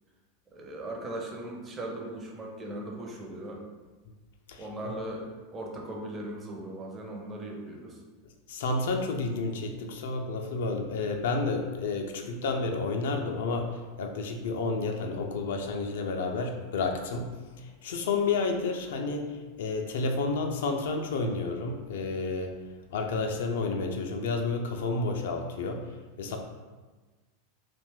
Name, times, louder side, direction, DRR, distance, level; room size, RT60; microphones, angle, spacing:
voice 1, 0.5-3.6 4.6-8.0 12.2-12.3 14.9-15.0, right 1 dB, 25° right, 0 dB, 0.6 m, -38 dB
voice 2, 4.5-4.9 8.5-13.7 14.0-17.3 17.6-22.5 22.9-25.8 26.2-26.4, left 3 dB, 60° left, 3 dB, 0.3 m, -30 dB
2.5 x 2.2 x 3.3 m, 1.3 s
figure-of-eight pair, 85°, 0 cm